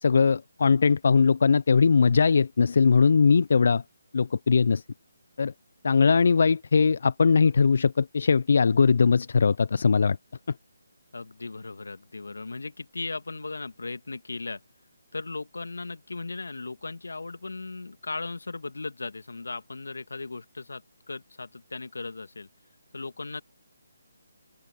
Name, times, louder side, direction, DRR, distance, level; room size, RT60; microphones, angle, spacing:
voice 1, 0.0-3.8 4.1-4.8 5.4-5.5 5.8-10.2, left 5 dB, 55° left, 0.8 m, -20 dB
voice 2, 11.1-14.6 15.1-22.5 22.9-23.4, left 3 dB, 70° left, 2.1 m, -37 dB
open air
figure-of-eight pair, 150°, 0 cm